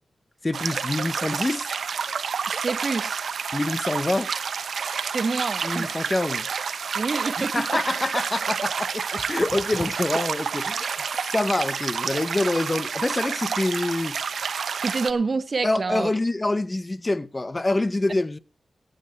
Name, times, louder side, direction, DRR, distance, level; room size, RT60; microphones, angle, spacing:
voice 1, 0.4-1.7 3.5-4.3 5.6-6.5 7.5-10.9 11.3-14.2 15.6-18.4, left 2 dB, 25° left, 0.7 m, -26 dB
sound 1, 0.5-15.1, right 6 dB, 85° right, 0.7 m, -29 dB
voice 2, 2.5-3.3 5.1-5.9 6.9-7.8 14.8-16.1, right 4 dB, 50° right, 0.9 m, -27 dB
15.5 x 9.0 x 4.4 m
wide cardioid pair, 90°, 0 cm